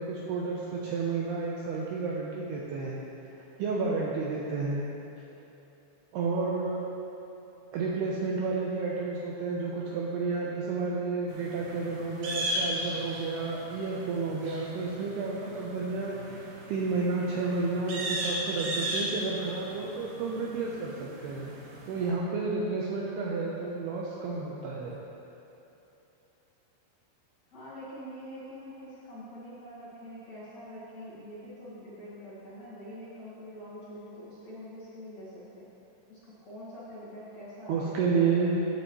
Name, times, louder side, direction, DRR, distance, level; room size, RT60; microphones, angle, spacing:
voice 1, 0.0-3.0 3.6-4.9 6.1-6.9 7.7-21.5 21.9-25.0 37.7-38.7, right 4 dB, 85° right, -3 dB, 2.3 m, -31 dB
sound 1, 11.3-22.1, right 1 dB, 60° right, 2.6 m, -37 dB
voice 2, 27.5-35.7 36.1-38.2, equal, 55° left, -11 dB, 2.0 m, -45 dB
14.5 x 9.3 x 3.1 m, 3.0 s
omnidirectional pair, 5.5 m